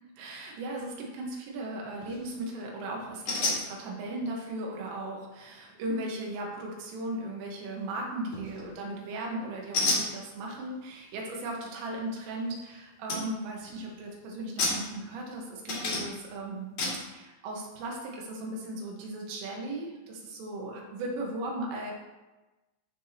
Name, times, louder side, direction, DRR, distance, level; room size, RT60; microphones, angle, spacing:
voice 1, 0.2-16.7 17.0-21.9, right 1 dB, 80° right, -1 dB, 3.9 m, -37 dB
sound 1, 2.0-2.3 3.3-3.6 8.3-8.7 9.7-10.1 12.6-12.7 13.1-13.2 13.6-13.9 14.6-15.3 15.7-16.3 16.8-17.0, left 3 dB, 45° left, 2.9 m, -30 dB
14.0 x 4.7 x 2.9 m, 1.1 s
omnidirectional pair, 5.8 m